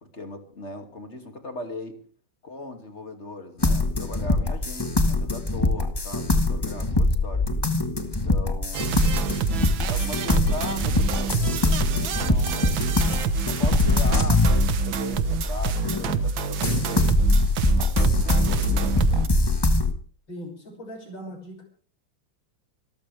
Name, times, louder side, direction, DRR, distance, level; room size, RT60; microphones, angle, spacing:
voice 1, 0.0-2.0 2.4-7.5 8.0-9.2 9.9-12.9 13.4-17.1 17.7-19.5, left 2 dB, 35° left, 5 dB, 2.7 m, -39 dB
sound 1, 3.6-16.2 16.6-19.9, left 2 dB, 15° left, 1.2 m, -23 dB
sound 2, 8.7-19.3, right 6 dB, 85° right, 2.0 m, -27 dB
voice 2, 20.3-21.6, equal, 75° left, 2 dB, 7.1 m, -39 dB
26.0 x 14.0 x 3.4 m, 0.41 s
omnidirectional pair, 2.1 m